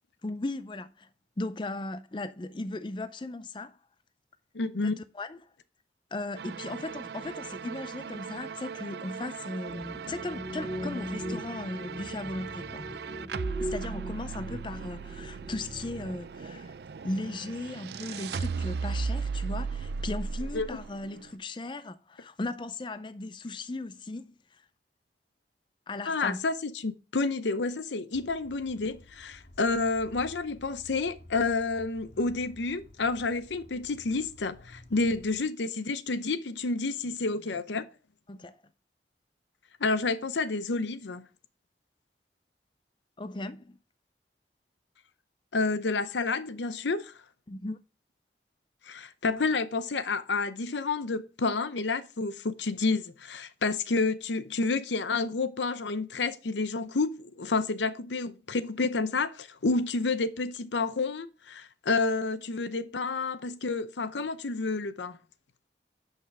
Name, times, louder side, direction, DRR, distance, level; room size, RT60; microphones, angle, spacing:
voice 1, 0.2-1.1 1.4-3.8 4.8-5.4 6.1-12.9 13.6-16.7 17.0-24.4 25.9-26.4 38.3-38.6 43.2-43.8 47.5-47.8, left 2 dB, 25° left, 0.5 m, -37 dB
voice 2, 4.5-5.0 20.5-20.8 26.1-37.9 39.8-41.2 45.5-47.1 48.9-65.2, left 3 dB, 90° left, 0.7 m, -29 dB
sound 1, 6.4-21.3, right 5 dB, 65° right, 0.4 m, -37 dB
sound 2, 9.7-16.1, equal, ahead, 2.0 m, -39 dB
sound 3, 28.1-35.4, left 1 dB, 60° left, 2.3 m, -53 dB
11.5 x 5.6 x 3.4 m
head